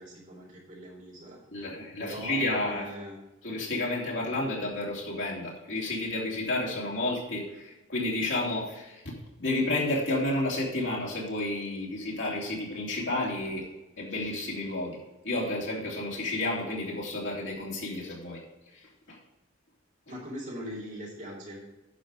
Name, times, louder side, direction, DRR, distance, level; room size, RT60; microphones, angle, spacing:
voice 1, 0.0-1.7 2.0-3.1 20.1-21.6, equal, 40° right, -3 dB, 4.1 m, -41 dB
voice 2, 1.5-2.8 3.4-13.6 14.0-15.0 15.2-18.4 18.7-19.2, left 2 dB, 65° left, -3 dB, 3.2 m, -31 dB
9.9 x 6.7 x 5.0 m, 1.0 s
head